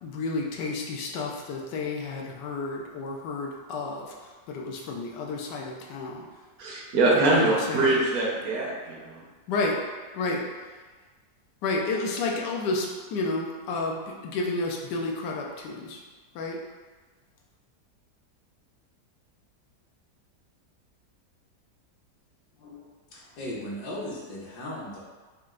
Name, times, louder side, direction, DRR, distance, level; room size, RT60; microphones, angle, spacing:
voice 1, 0.0-4.1 4.5-6.2 7.1-8.0 9.5-9.8 10.1-10.4 11.6-16.0 16.3-16.6, left 3 dB, 90° left, 0 dB, 1.3 m, -31 dB
voice 2, 6.6-9.2, right 2 dB, 65° right, -3 dB, 1.1 m, -23 dB
voice 3, 22.5-25.0, left 1 dB, 75° left, -5 dB, 1.5 m, -37 dB
4.4 x 2.5 x 3.6 m, 1.3 s
omnidirectional pair, 1.8 m